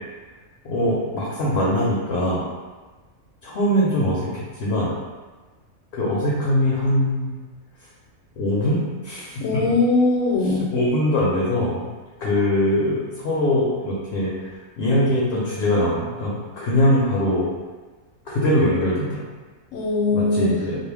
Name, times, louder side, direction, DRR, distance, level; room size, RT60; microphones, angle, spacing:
voice 1, 0.6-2.4 3.4-4.9 5.9-7.4 8.4-9.6 10.7-11.9 12.2-17.5 18.3-19.2 20.1-20.8, left 1 dB, 65° left, -6 dB, 0.8 m, -22 dB
voice 2, 9.4-10.7 19.7-20.5, left 3 dB, 85° left, -2 dB, 1.0 m, -20 dB
2.3 x 2.1 x 3.3 m, 1.3 s
omnidirectional pair, 1.4 m